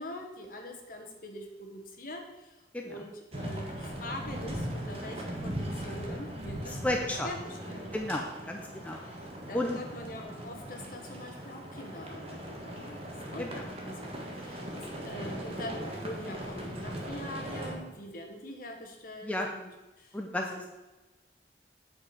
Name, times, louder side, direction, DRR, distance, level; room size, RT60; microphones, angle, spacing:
voice 1, 0.0-7.9 8.5-8.6 9.0-13.5 13.8-14.1 14.4-19.7 20.0-20.7, left 1 dB, 50° left, 3 dB, 1.4 m, -44 dB
voice 2, 2.7-3.1 6.7-7.3 7.9-9.0 9.5-9.8 13.4-13.6 19.2-19.5 20.1-20.7, left 1 dB, 10° left, 1 dB, 0.6 m, -33 dB
sound 1, 3.3-17.8, equal, 30° right, 1.5 m, -39 dB
8.0 x 7.0 x 4.8 m, 1.1 s
head